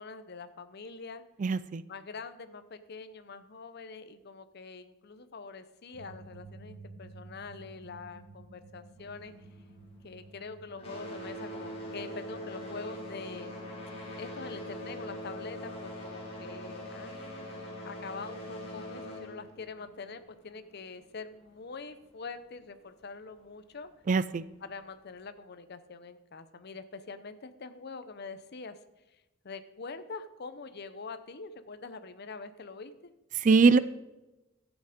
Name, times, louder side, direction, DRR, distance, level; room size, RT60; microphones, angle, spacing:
voice 1, 0.0-1.2 1.9-9.3 10.0-13.6 14.2-23.9 24.6-28.8 29.4-33.1, left 4 dB, 55° left, 11 dB, 0.8 m, -44 dB
voice 2, 1.4-1.8 24.1-24.5 33.3-33.8, right 4 dB, 40° right, 17 dB, 0.4 m, -22 dB
sound 1, 5.9-13.2, right 2 dB, 60° right, 1.0 m, -52 dB
sound 2, 9.0-10.3 10.6-20.9 21.8-21.9 22.6-22.7 23.3-23.4, equal, 30° left, 3.1 m, -42 dB
12.5 x 8.2 x 5.1 m, 1.0 s
head